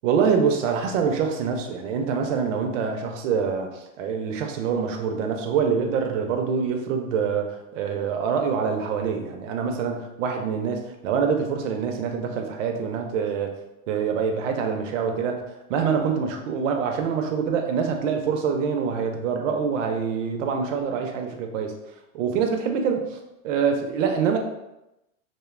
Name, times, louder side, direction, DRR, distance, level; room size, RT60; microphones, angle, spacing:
voice 1, 0.0-13.5 13.9-15.4 15.7-21.7 22.1-23.2 23.4-24.4, right 6 dB, 65° right, 4 dB, 0.6 m, -25 dB
2.6 x 2.1 x 2.4 m, 0.92 s
hypercardioid pair, 115°, 42 cm